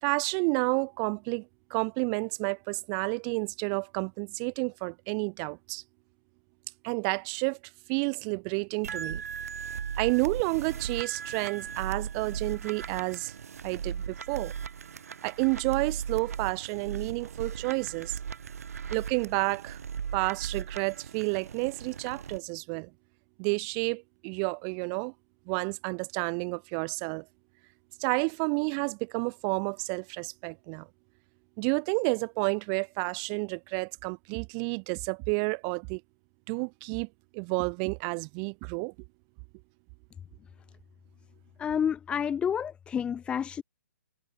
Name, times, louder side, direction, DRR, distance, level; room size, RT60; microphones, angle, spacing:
voice 1, 0.0-5.8 6.8-7.6 7.9-9.2 10.0-13.3 13.6-14.5 15.2-18.2 18.9-19.8 20.1-22.9 23.4-25.1 25.5-27.2 28.0-30.9 31.6-36.0 36.5-37.1 37.3-38.9, right 40 dB or more, 30° right, 2.0 m, -30 dB
sound 1, 8.8-22.4, right 7 dB, 65° right, 5.6 m, -38 dB
voice 2, 41.6-43.6, left 8 dB, 10° left, 1.1 m, -29 dB
hypercardioid pair, 135°, 9 cm